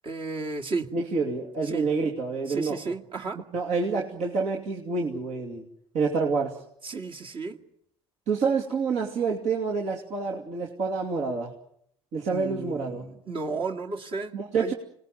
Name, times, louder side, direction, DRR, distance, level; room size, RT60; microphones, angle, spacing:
voice 1, 0.0-0.9 1.6-1.9 2.5-3.4 6.8-7.6 12.3-14.7, right 4 dB, 40° right, 2 dB, 2.3 m, -33 dB
voice 2, 0.9-2.9 3.5-5.7 5.9-6.6 8.3-11.6 12.1-13.1 14.3-14.7, right 4 dB, 60° right, -1 dB, 2.9 m, -28 dB
25.5 x 20.0 x 9.3 m, 0.72 s
hypercardioid pair, 75°, 13 cm